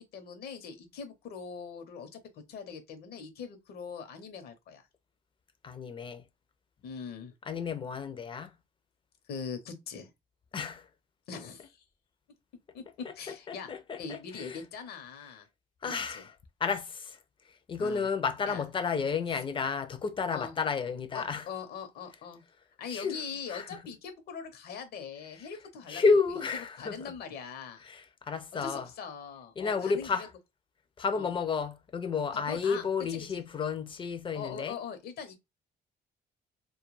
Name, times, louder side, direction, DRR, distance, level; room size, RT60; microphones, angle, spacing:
voice 1, 0.1-4.8 6.8-7.3 9.3-10.1 11.3-11.8 12.7-13.7 14.0-15.5 16.1-16.3 17.8-18.1 18.5-18.6 20.3-20.5 21.1-22.4 22.8-26.2 26.8-27.9 28.6-30.3 31.1-31.3 32.3-33.4 34.3-35.3, left 6 dB, 70° left, 0.8 m, -42 dB
voice 2, 5.6-6.2 7.4-8.5 10.5-10.9 11.6-11.7 13.0-14.7 15.8-16.4 16.6-17.2 17.7-21.5 22.9-23.9 25.3-25.6 25.9-27.2 27.8-28.9 29.6-30.3 31.0-34.8, left 5 dB, 30° left, 0.4 m, -32 dB
2.3 x 2.2 x 3.1 m
cardioid pair, 110°, 17 cm